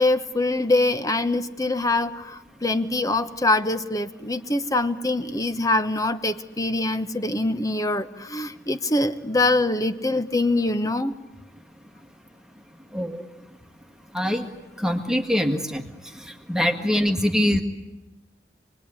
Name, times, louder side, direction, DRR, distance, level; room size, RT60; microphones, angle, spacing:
voice 1, 0.0-11.1, left 2 dB, 20° left, 10 dB, 1.1 m, -24 dB
voice 2, 14.8-15.8 16.5-17.6, equal, 5° right, 4 dB, 1.9 m, -23 dB
27.5 x 21.0 x 9.9 m, 1.0 s
head